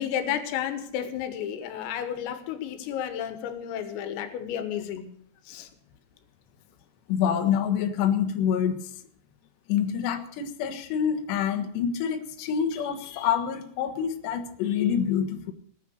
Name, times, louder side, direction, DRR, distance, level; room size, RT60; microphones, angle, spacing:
voice 1, 0.0-5.1 5.5-5.7, left 9 dB, 85° left, 8 dB, 4.0 m, -32 dB
voice 2, 7.1-8.9 9.7-15.5, left 8 dB, 70° left, 5 dB, 3.2 m, -26 dB
19.0 x 10.0 x 6.4 m, 0.64 s
omnidirectional pair, 5.9 m